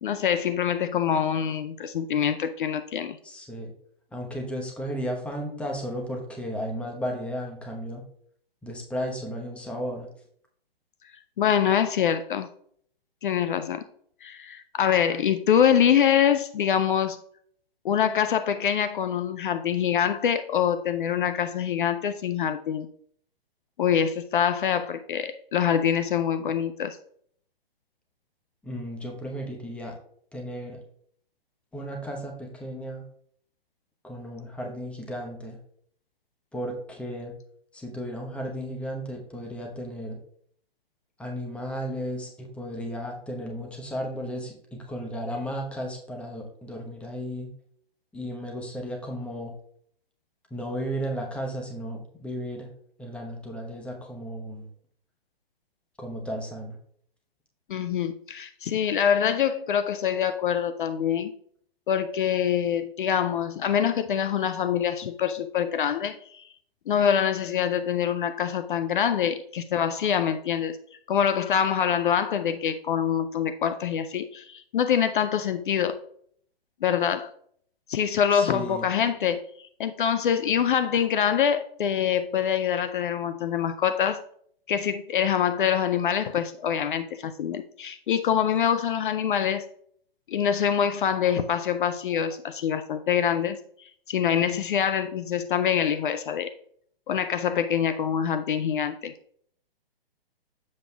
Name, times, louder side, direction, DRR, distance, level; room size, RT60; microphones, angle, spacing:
voice 1, 0.0-3.2 11.4-12.5 13.2-13.8 14.2-17.2 17.8-22.9 23.8-27.0 57.7-61.3 61.9-66.5 66.9-70.8 71.1-76.0 76.8-77.3 77.9-84.2 84.7-89.7 90.3-96.5 97.1-99.1, left 8 dB, 55° left, 0.5 m, -25 dB
voice 2, 3.2-3.7 4.1-8.0 8.6-10.1 28.6-29.9 30.3-30.8 31.7-33.0 34.0-35.6 36.5-37.3 37.7-40.2 41.2-47.5 48.1-49.5 50.5-52.7 53.0-54.7 56.0-56.7 78.3-78.8, equal, 5° left, 0.9 m, -34 dB
7.7 x 7.4 x 2.3 m
figure-of-eight pair, 125°, 30 cm